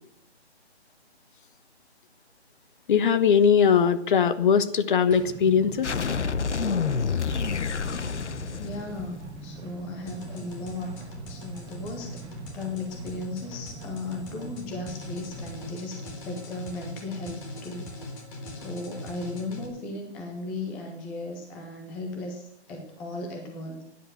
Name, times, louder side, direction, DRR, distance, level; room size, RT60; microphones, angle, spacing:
voice 1, 2.9-5.9, left 7 dB, 45° left, 11 dB, 1.3 m, -20 dB
sound 1, 5.1-15.7, right 4 dB, 10° right, 1.9 m, -43 dB
sound 2, 5.8-9.5, left 5 dB, 80° left, 1.1 m, -28 dB
voice 2, 8.6-11.0 11.3-12.3 12.5-17.9 18.5-23.8, left 2 dB, 5° left, 1 dB, 0.5 m, -36 dB
sound 3, 10.1-19.7, left 1 dB, 30° left, 3.5 m, -41 dB
16.5 x 10.0 x 6.7 m, 0.79 s
hypercardioid pair, 150°, 34 cm